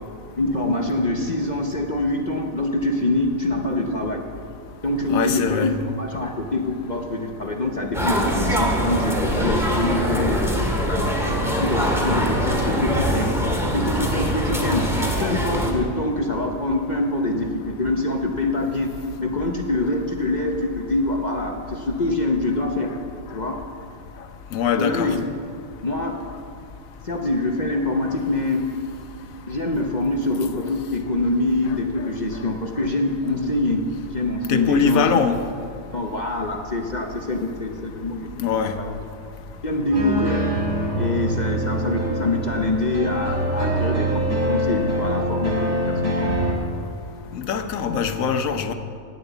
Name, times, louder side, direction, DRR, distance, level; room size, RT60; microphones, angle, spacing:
voice 1, 0.4-4.2 4.8-11.2 11.6-13.3 13.6-14.9 15.2-23.0 23.3-23.6 24.8-25.3 25.8-26.2 27.0-28.7 29.5-33.8 34.1-35.2 35.9-38.3 38.6-38.9 39.6-40.5 41.0-46.4, left 2 dB, 40° left, 2 dB, 0.8 m, -25 dB
voice 2, 5.1-5.7 24.5-25.2 34.5-35.4 38.4-38.7 47.3-48.7, left 7 dB, 80° left, 8 dB, 1.3 m, -22 dB
sound 1, 7.9-15.7, equal, ahead, 1.8 m, -23 dB
sound 2, 39.9-46.5, right 1 dB, 80° right, 2.7 m, -24 dB
10.5 x 9.6 x 8.1 m, 2.4 s
omnidirectional pair, 1.4 m